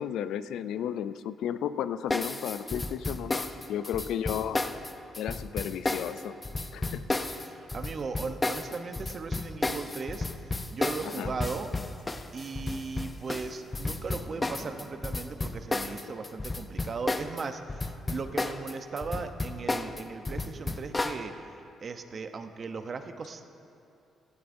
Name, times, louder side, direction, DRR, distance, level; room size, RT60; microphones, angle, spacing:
voice 1, 0.0-4.6 5.2-6.4 6.7-7.1 11.0-11.3, left 9 dB, 80° left, 13 dB, 0.4 m, -33 dB
sound 1, 2.1-17.4 17.7-21.2, left 2 dB, 20° left, 0.6 m, -32 dB
voice 2, 7.4-10.3 10.7-11.7 12.3-21.6 21.8-23.5, right 4 dB, 45° right, 8 dB, 0.8 m, -37 dB
sound 2, 13.1-15.8, equal, 20° right, 2.2 m, -51 dB
16.5 x 12.5 x 2.6 m, 2.6 s
cardioid pair, 90°, 0 cm